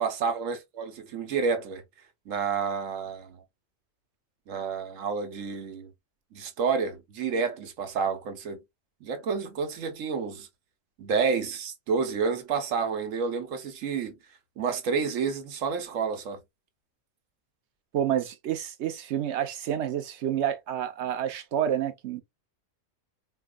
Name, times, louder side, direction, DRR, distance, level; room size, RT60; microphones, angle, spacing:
voice 1, 0.0-1.8 2.3-3.4 4.5-5.9 6.3-8.6 9.0-10.5 11.0-14.2 14.6-16.4, right 5 dB, 85° right, 1.2 m, -29 dB
voice 2, 17.9-22.2, right 10 dB, 65° right, 0.9 m, -29 dB
4.4 x 2.4 x 2.3 m
omnidirectional pair, 1.3 m